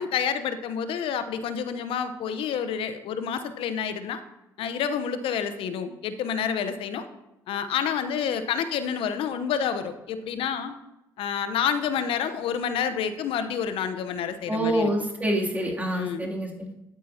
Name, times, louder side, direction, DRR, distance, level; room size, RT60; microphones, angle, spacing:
voice 1, 0.0-4.2 4.6-7.1 7.5-10.8 11.2-14.9 15.9-16.3, left 7 dB, 60° left, 11 dB, 0.9 m, -28 dB
voice 2, 14.5-16.7, right 1 dB, 15° right, -2 dB, 2.7 m, -26 dB
13.0 x 8.4 x 2.8 m, 0.90 s
hypercardioid pair, 55°, 10 cm